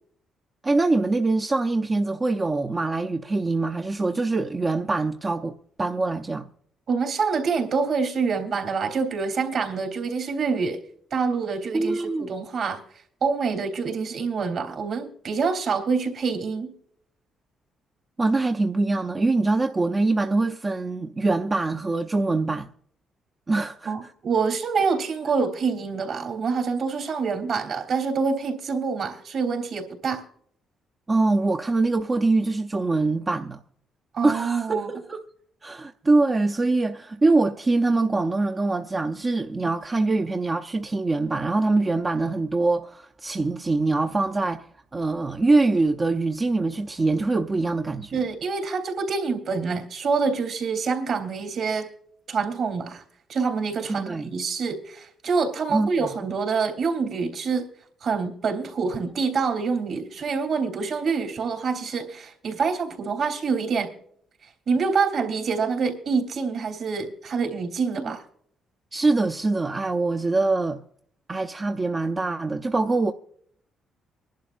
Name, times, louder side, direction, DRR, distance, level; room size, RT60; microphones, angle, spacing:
voice 1, 0.6-6.5 11.7-12.3 18.2-22.7 23.5-23.9 31.1-33.6 34.2-35.3 35.6-44.6 44.9-48.2 53.9-54.3 55.7-56.1 68.0-68.1 68.9-70.8 71.3-73.1, right 3 dB, 25° right, 0.6 m, -24 dB
voice 2, 6.9-10.8 11.1-12.8 13.2-16.7 23.8-30.2 34.1-34.9 48.1-51.9 52.3-53.0 53.3-57.7 58.0-63.9 64.7-68.2, right 5 dB, 60° right, 3.1 m, -26 dB
26.0 x 11.5 x 2.5 m
cardioid pair, 90°, 0 cm